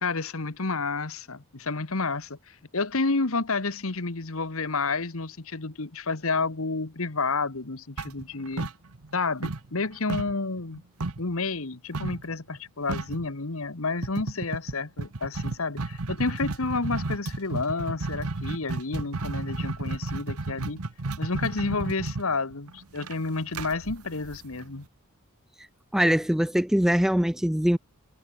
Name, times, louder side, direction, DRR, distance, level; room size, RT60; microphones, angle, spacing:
voice 1, 0.0-8.7 9.1-10.8 11.2-20.8 21.2-24.8, left 3 dB, 70° left, 1.4 m, -30 dB
sound 1, 8.0-9.2 9.4-11.3 11.9-12.3 12.6-12.7 12.9-13.3 14.0-24.8, right 2 dB, 80° right, 1.2 m, -32 dB
voice 2, 25.9-27.8, equal, ahead, 0.3 m, -22 dB
head